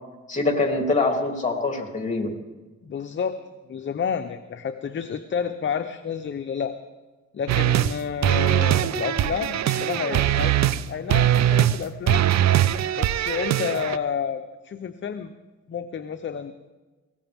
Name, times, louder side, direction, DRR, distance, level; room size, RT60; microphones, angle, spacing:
voice 1, 0.3-2.3, left 3 dB, 25° left, 2 dB, 3.3 m, -24 dB
voice 2, 2.8-3.4 3.7-6.8 7.3-10.6 10.9-12.3 13.0-15.3 15.7-16.5, left 7 dB, 40° left, 9 dB, 0.8 m, -30 dB
sound 1, 7.5-8.0 8.2-10.8 11.1-11.8 12.1-14.0, right 12 dB, 65° right, 0.7 m, -21 dB
21.0 x 18.0 x 3.6 m, 1.2 s
cardioid pair, 90°, 30 cm